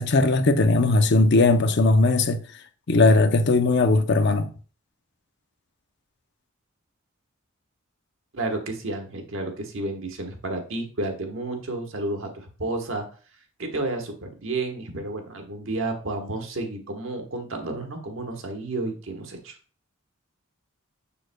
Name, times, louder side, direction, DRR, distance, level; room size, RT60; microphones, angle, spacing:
voice 1, 0.0-2.4 2.9-4.5, left 2 dB, 55° left, 0.6 m, -19 dB
voice 2, 8.3-13.0 13.6-19.5, right 2 dB, 65° right, 1.2 m, -31 dB
7.0 x 6.3 x 2.2 m
head